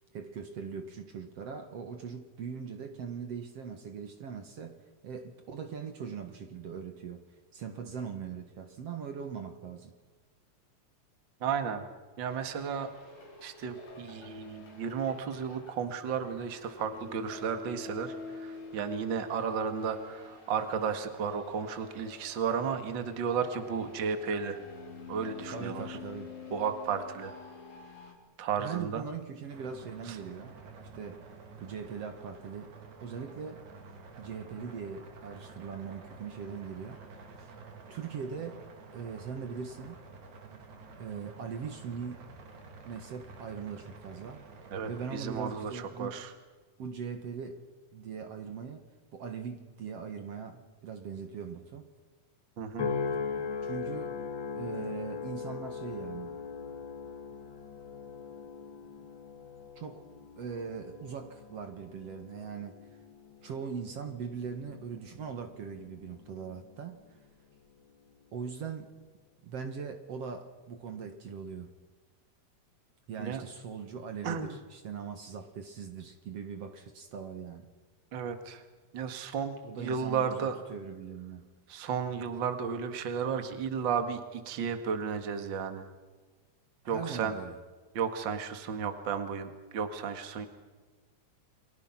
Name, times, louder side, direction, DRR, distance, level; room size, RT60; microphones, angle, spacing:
voice 1, 0.0-7.2 7.5-9.9 25.5-26.3 28.6-31.2 31.6-32.7 33.0-33.7 34.2-37.5 37.9-38.7 38.9-40.0 41.0-42.3 42.8-44.4 44.9-46.2 46.8-47.6 47.9-48.8 49.1-51.9 53.6-54.2 54.6-56.4 59.8-60.1 60.4-62.8 63.4-67.0 68.3-68.9 69.4-71.7 73.1-77.7 79.6-81.4 86.8-87.6, right 6 dB, 60° right, 6 dB, 2.6 m, -40 dB
voice 2, 11.4-11.9 12.2-12.9 13.4-24.6 25.1-26.0 26.5-27.3 28.4-29.0 30.1-30.2 44.7-46.3 52.6-52.9 73.2-73.4 74.2-74.5 78.1-78.6 78.9-80.6 81.7-85.9 86.9-87.3 87.9-90.5, right 6 dB, 45° right, 7 dB, 2.3 m, -33 dB
sound 1, 12.3-28.1, left 4 dB, 85° left, 5.7 m, -47 dB
sound 2, 29.5-45.7, right 4 dB, 90° right, 4.2 m, -50 dB
sound 3, 52.8-67.3 67.8-68.2, left 5 dB, 45° left, 2.2 m, -40 dB
30.0 x 24.0 x 6.0 m, 1.3 s
omnidirectional pair, 3.3 m